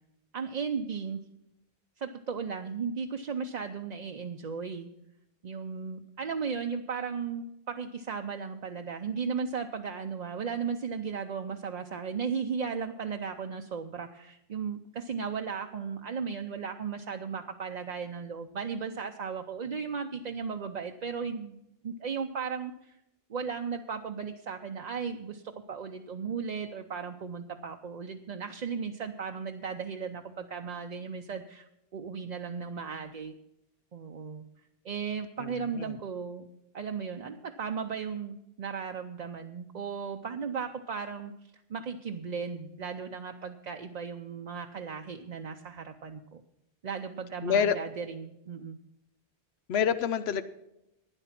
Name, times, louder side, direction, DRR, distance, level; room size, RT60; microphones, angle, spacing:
voice 1, 0.3-1.2 2.0-4.9 5.4-21.6 21.8-23.0 23.3-31.7 31.9-33.3 33.9-34.4 34.8-36.5 36.7-46.4 46.8-48.8, right 6 dB, 50° right, 4 dB, 0.7 m, -36 dB
voice 2, 47.4-47.8 49.7-50.4, left 7 dB, 85° left, 12 dB, 0.9 m, -26 dB
12.0 x 9.9 x 5.8 m, 0.88 s
omnidirectional pair, 1.0 m